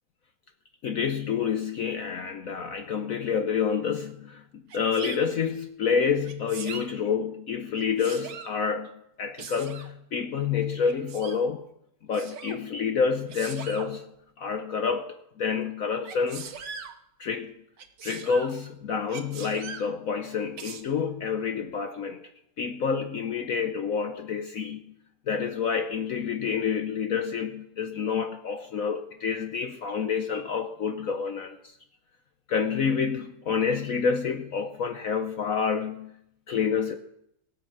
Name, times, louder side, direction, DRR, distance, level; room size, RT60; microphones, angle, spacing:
voice 1, 0.8-11.6 12.0-16.5 17.2-17.6 18.0-22.2 22.6-24.9 25.3-31.8 32.5-36.1 36.5-36.9, left 6 dB, 75° left, 0.8 m, -28 dB
Sneeze, 4.7-5.2 6.2-6.9 7.7-8.5 9.4-9.9 10.9-11.4 12.1-12.6 13.3-13.9 16.1-16.9 17.8-18.5 19.1-19.9 20.6-20.8, right 6 dB, 60° right, 1.7 m, -40 dB
16.5 x 9.0 x 7.4 m
omnidirectional pair, 2.4 m